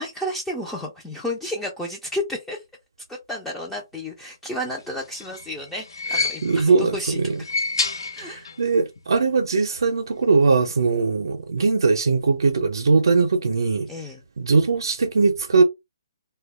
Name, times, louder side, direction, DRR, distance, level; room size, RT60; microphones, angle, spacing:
voice 1, 0.0-2.6 3.1-7.5 8.1-8.5 13.9-14.2, left 1 dB, 5° left, 0.3 m, -32 dB
sound 1, 4.9-6.8 7.3-8.7 9.0-9.1 10.2-10.3, left 3 dB, 85° left, 0.4 m, -29 dB
voice 2, 6.1-7.4 8.2-13.9 14.4-15.6, right 4 dB, 80° right, 0.5 m, -20 dB
2.2 x 2.1 x 3.2 m
hypercardioid pair, 165°, 2 cm